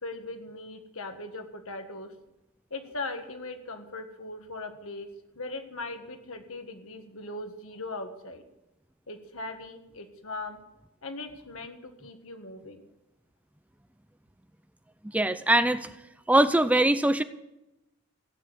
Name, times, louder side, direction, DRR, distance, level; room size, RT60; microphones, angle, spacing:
voice 1, 0.0-2.1 2.7-5.1 5.3-8.4 9.1-10.6 11.0-12.9, left 2 dB, 65° left, 6 dB, 1.8 m, -39 dB
voice 2, 15.1-16.0 16.3-17.2, right 1 dB, 5° right, 11 dB, 0.5 m, -22 dB
16.5 x 9.1 x 8.2 m, 0.92 s
head